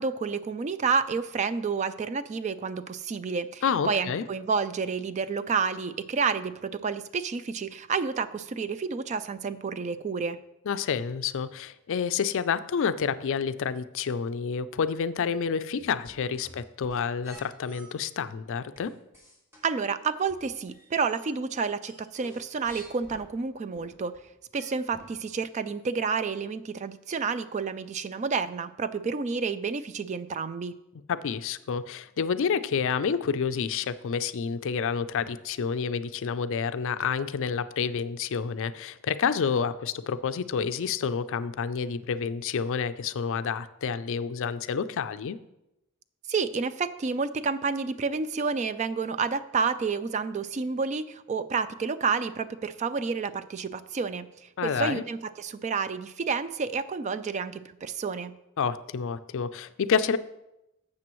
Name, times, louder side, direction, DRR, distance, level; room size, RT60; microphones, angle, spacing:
voice 1, 0.0-10.4 19.6-24.1 24.5-30.7 46.3-54.3 54.6-58.3, right 5 dB, 30° right, 13 dB, 0.3 m, -30 dB
voice 2, 3.6-4.3 10.7-18.9 31.1-45.4 54.6-55.0 58.6-60.2, left 6 dB, 60° left, 13 dB, 0.4 m, -29 dB
sound 1, 15.8-17.9 18.8-21.3 21.6-23.2 23.7-25.3 25.7-25.8, right 1 dB, 15° right, 2.1 m, -51 dB
12.0 x 7.5 x 3.1 m, 0.90 s
head